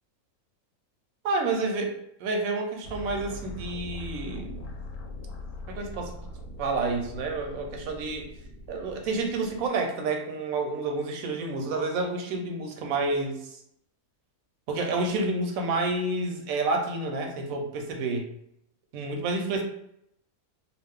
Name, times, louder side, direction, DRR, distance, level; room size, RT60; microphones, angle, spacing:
voice 1, 1.2-1.9 2.2-4.7 5.7-6.1 6.6-8.3 8.7-13.6 14.7-18.3 18.9-19.6, right 3 dB, 75° right, 3 dB, 1.0 m, -29 dB
sound 1, 2.8-9.7, equal, 90° left, 1.1 m, -41 dB
2.4 x 2.4 x 3.5 m, 0.76 s
omnidirectional pair, 1.5 m